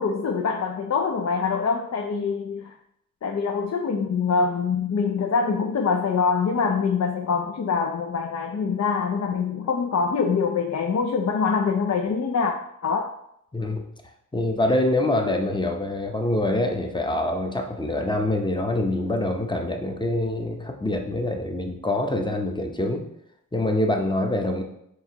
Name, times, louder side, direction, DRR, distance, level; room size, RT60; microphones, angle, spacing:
voice 1, 0.0-2.7 3.2-12.5 12.8-13.1, left 5 dB, 50° left, 3 dB, 0.5 m, -24 dB
voice 2, 13.5-13.8 14.3-23.0 23.5-24.6, left 1 dB, 15° left, 3 dB, 0.7 m, -25 dB
4.6 x 3.5 x 2.9 m, 0.75 s
cardioid pair, 45°, 34 cm